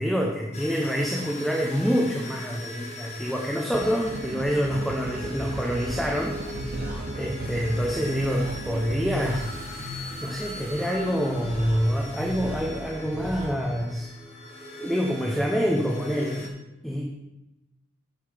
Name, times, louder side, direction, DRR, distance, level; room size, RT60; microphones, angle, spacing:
voice 1, 0.0-6.4 7.1-14.1 14.8-16.5 16.8-17.0, equal, ahead, -1 dB, 0.8 m, -27 dB
sound 1, 0.5-16.5, left 1 dB, 35° left, 1.1 m, -40 dB
sound 2, 3.7-9.3, right 3 dB, 45° right, 0.4 m, -37 dB
sound 3, 5.3-13.5, equal, 70° right, 2.3 m, -37 dB
7.8 x 6.6 x 5.1 m, 0.97 s
head